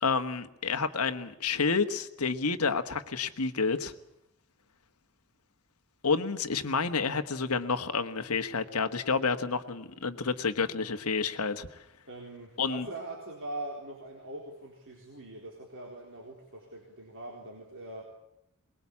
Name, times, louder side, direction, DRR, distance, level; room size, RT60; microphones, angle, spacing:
voice 1, 0.0-3.9 6.0-11.8 12.6-12.9, left 4 dB, 75° left, 8 dB, 1.4 m, -29 dB
voice 2, 12.1-18.0, right 2 dB, 60° right, -1 dB, 4.1 m, -42 dB
23.0 x 21.0 x 8.5 m, 0.84 s
head